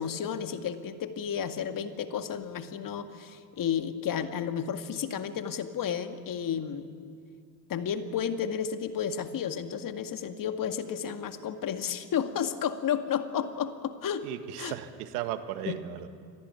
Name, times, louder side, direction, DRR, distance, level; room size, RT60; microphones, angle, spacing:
voice 1, 0.0-6.9 7.7-14.3 14.6-14.7 15.7-15.8, left 8 dB, 45° left, 7 dB, 2.1 m, -32 dB
voice 2, 14.2-16.1, right 13 dB, 75° right, 10 dB, 1.7 m, -36 dB
24.5 x 18.0 x 9.7 m, 2.3 s
hypercardioid pair, 65°, 45 cm